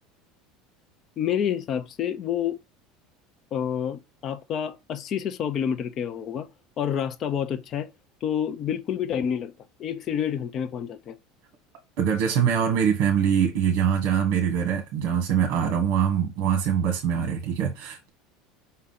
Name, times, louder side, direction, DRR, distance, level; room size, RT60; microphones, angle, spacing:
voice 1, 1.2-2.6 3.5-6.5 6.8-7.9 8.2-9.5 9.8-11.2, left 8 dB, 35° left, 0.5 m, -28 dB
voice 2, 12.0-18.1, right 8 dB, 55° right, 1.5 m, -23 dB
5.7 x 3.8 x 5.7 m
cardioid pair, 155°, 0 cm